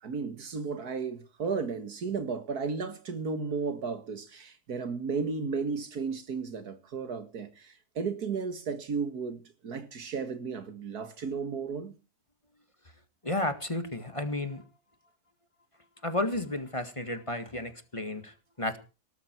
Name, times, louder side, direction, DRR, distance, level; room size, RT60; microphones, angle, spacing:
voice 1, 0.0-12.0, right 5 dB, 90° right, 2.3 m, -34 dB
voice 2, 13.2-14.6 16.0-18.8, left 1 dB, 20° left, 1.9 m, -32 dB
18.5 x 13.0 x 4.6 m
omnidirectional pair, 1.6 m